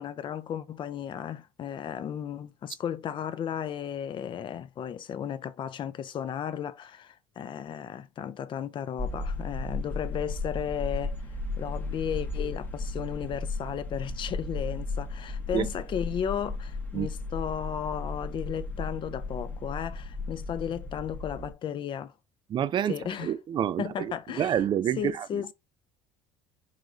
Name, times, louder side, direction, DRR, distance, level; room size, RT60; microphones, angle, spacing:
voice 1, 0.0-22.1 22.9-23.3 23.8-24.5 25.0-25.5, left 9 dB, 45° left, 0.5 m, -34 dB
sound 1, 9.0-21.5, left 3 dB, 15° left, 0.8 m, -35 dB
voice 2, 22.5-25.3, right 9 dB, 40° right, 0.4 m, -28 dB
4.8 x 3.0 x 2.5 m
supercardioid pair, 85°, 12 cm